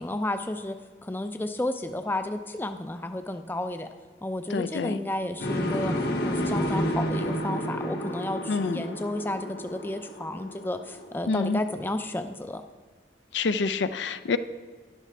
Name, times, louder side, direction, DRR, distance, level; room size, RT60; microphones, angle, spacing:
voice 1, 0.0-3.9 4.2-5.9 6.2-12.6, left 1 dB, 10° left, 8 dB, 0.4 m, -32 dB
voice 2, 4.5-5.0 8.5-8.8 11.3-11.6 13.3-14.4, left 4 dB, 90° left, 12 dB, 0.5 m, -27 dB
sound 1, 5.4-11.4, equal, 65° left, 1.3 m, -30 dB
12.0 x 11.0 x 3.3 m, 1.5 s
head